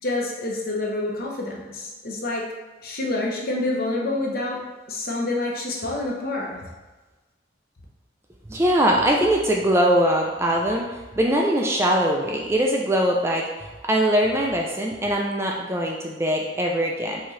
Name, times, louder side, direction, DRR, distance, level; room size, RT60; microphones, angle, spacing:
voice 1, 0.0-2.5 2.8-4.6 4.9-6.6, left 2 dB, 50° left, -2 dB, 0.8 m, -27 dB
voice 2, 8.5-10.8 11.2-17.2, equal, 15° right, 0 dB, 0.3 m, -22 dB
5.8 x 2.8 x 3.1 m, 1.2 s
head